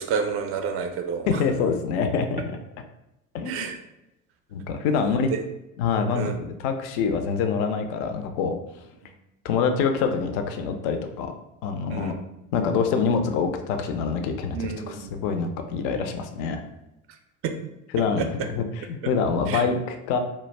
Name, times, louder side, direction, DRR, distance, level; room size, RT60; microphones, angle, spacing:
voice 1, 0.0-1.4 3.5-3.8 5.0-5.4 6.1-6.4 11.9-12.2 14.5-15.1 17.4-17.6 18.0-18.3 19.5-19.6, right 6 dB, 35° right, 5 dB, 0.4 m, -30 dB
voice 2, 1.3-2.6 3.3-3.7 4.5-5.3 5.8-8.5 9.4-11.3 11.6-12.1 12.5-14.6 14.9-16.6 17.9-20.2, left 5 dB, 50° left, 7 dB, 0.4 m, -25 dB
2.2 x 2.1 x 3.2 m, 0.90 s
figure-of-eight pair, 65°, 42 cm